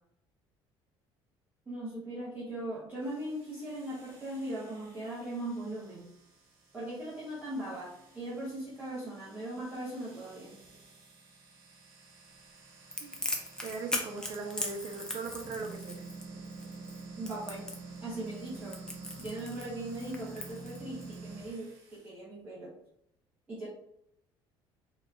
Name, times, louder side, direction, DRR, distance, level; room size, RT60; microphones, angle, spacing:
voice 1, 1.7-6.1 6.7-10.5 17.2-17.7 18.0-18.8 19.2-22.7 23.5-23.7, right 1 dB, 15° right, -10 dB, 1.1 m, -39 dB
sound 1, 3.0-22.1, right 3 dB, 75° right, 1.2 m, -50 dB
Crackle, 12.9-21.1, left 1 dB, 5° left, 0.6 m, -39 dB
voice 2, 13.6-16.1, right 4 dB, 50° right, 3 dB, 0.7 m, -39 dB
4.3 x 2.9 x 2.4 m, 0.75 s
cardioid pair, 140°, 10 cm